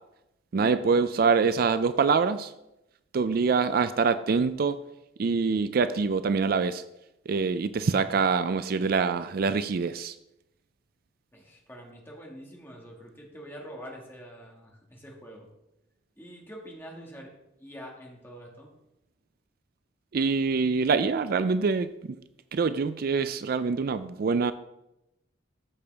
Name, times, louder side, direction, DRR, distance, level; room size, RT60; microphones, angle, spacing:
voice 1, 0.5-2.5 3.1-4.8 5.2-6.8 7.3-10.1 20.1-22.2 22.5-24.5, right 5 dB, 55° right, 12 dB, 0.4 m, -25 dB
voice 2, 11.3-15.5 16.2-17.3 17.6-18.7, equal, 10° left, -1 dB, 1.9 m, -45 dB
14.0 x 6.7 x 3.4 m, 0.88 s
head